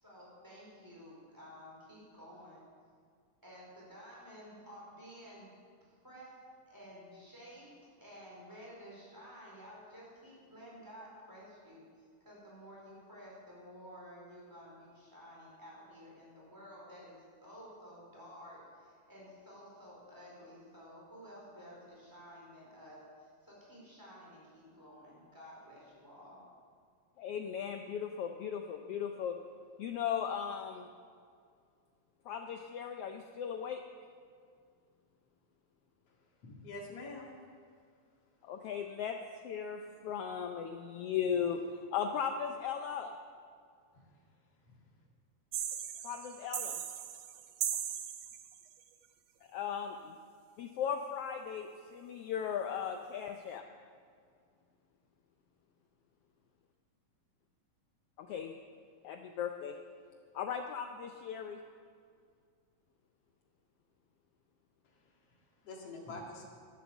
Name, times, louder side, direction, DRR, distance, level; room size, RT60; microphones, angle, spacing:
voice 1, 0.0-2.6 3.4-5.5 5.8-6.4 6.7-7.7 8.0-17.1 17.4-26.4, equal, 5° right, -5 dB, 4.3 m, -52 dB
voice 2, 27.2-29.4 29.8-30.9 32.3-33.8 38.4-39.2 39.4-43.1 46.0-46.8 49.5-50.1 50.6-53.6 58.2-58.5 59.0-59.8 60.3-61.6, left 7 dB, 80° left, 5 dB, 1.3 m, -37 dB
voice 3, 36.1-37.3 43.9-44.3 44.6-44.8 64.8-66.4, left 2 dB, 55° left, -1 dB, 2.9 m, -48 dB
high-hat cadenza, 45.5-48.8, right 10 dB, 70° right, 1.8 m, -39 dB
11.0 x 11.0 x 7.2 m, 2.2 s
omnidirectional pair, 3.4 m